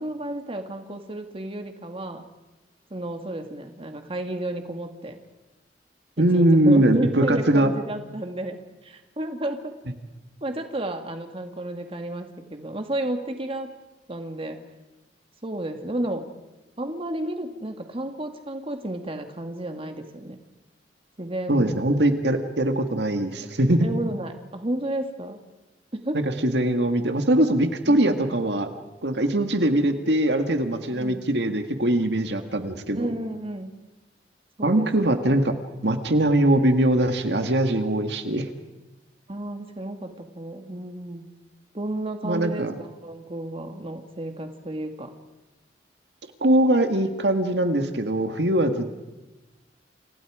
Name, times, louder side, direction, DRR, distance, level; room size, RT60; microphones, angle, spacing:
voice 1, 0.0-2.2 2.9-5.2 6.2-9.7 10.4-13.7 14.1-14.6 15.4-16.3 16.8-20.4 21.2-22.0 23.8-25.4 25.9-26.2 27.9-28.3 30.8-31.3 32.9-33.7 34.6-34.9 39.3-41.3 41.7-45.1, right 1 dB, 35° right, 5 dB, 2.2 m, -32 dB
voice 2, 6.2-7.7 21.5-23.9 26.1-28.7 29.0-33.1 34.6-35.5 35.8-38.5 42.2-42.7 46.4-48.9, right 1 dB, 70° right, 6 dB, 2.0 m, -21 dB
29.5 x 28.5 x 5.1 m, 1.1 s
head